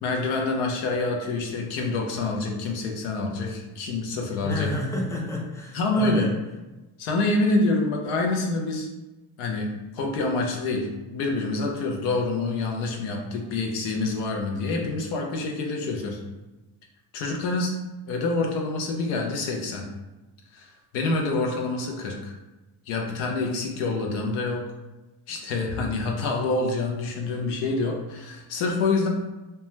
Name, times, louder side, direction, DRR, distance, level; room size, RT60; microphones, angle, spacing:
voice 1, 0.0-4.7 5.7-6.2 7.0-8.9 9.4-16.2 17.1-17.8 18.1-19.9 20.5-22.3 22.9-24.6 25.3-29.1, left 3 dB, 90° left, 1 dB, 0.6 m, -27 dB
voice 2, 4.4-6.3, left 1 dB, 5° left, -2 dB, 0.5 m, -30 dB
2.2 x 2.2 x 3.0 m, 1.1 s
supercardioid pair, 80°, 48 cm